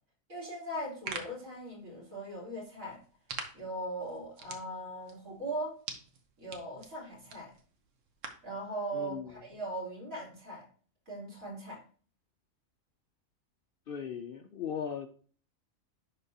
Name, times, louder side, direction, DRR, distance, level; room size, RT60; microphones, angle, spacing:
voice 1, 0.3-3.0 3.5-5.7 6.4-7.5 8.4-10.7 11.1-11.8, right 1 dB, 90° right, -6 dB, 3.5 m, -39 dB
sound 1, 0.7-8.5, right 4 dB, 70° right, 1.3 m, -47 dB
voice 2, 8.9-9.3 13.9-15.1, left 7 dB, 60° left, 7 dB, 0.6 m, -38 dB
11.0 x 3.7 x 2.7 m, 0.42 s
omnidirectional pair, 1.4 m